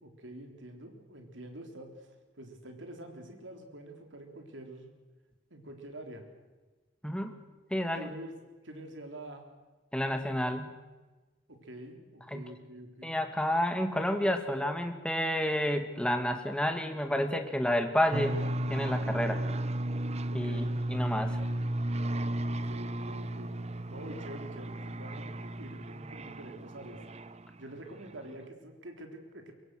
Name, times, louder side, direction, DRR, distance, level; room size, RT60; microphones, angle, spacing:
voice 1, 0.0-4.9 5.5-6.2 7.9-8.3 8.6-9.5 11.5-13.2 20.3-20.7 22.5-23.5 23.9-27.0 27.6-29.5, right 1 dB, 70° right, 4 dB, 3.8 m, -46 dB
voice 2, 7.7-8.1 9.9-10.7 12.3-12.4 13.0-18.4 18.7-19.4 20.3-20.6 20.9-21.4, left 1 dB, 5° left, 6 dB, 1.9 m, -30 dB
sound 1, 18.1-27.7, right 1 dB, 35° right, 0.8 m, -34 dB
24.0 x 22.5 x 6.4 m, 1.2 s
head